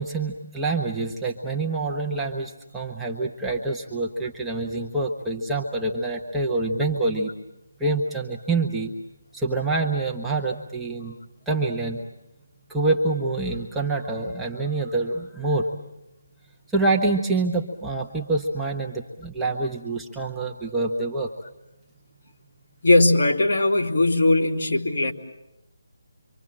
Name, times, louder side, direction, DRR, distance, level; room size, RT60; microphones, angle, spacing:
voice 1, 0.0-7.3 7.8-8.9 9.3-11.1 11.5-12.0 12.7-15.7 16.7-21.3, right 3 dB, 5° right, -3 dB, 1.2 m, -26 dB
voice 2, 22.8-25.1, left 2 dB, 50° left, 0 dB, 2.9 m, -19 dB
26.5 x 25.5 x 7.7 m, 0.92 s
figure-of-eight pair, 165°, 0 cm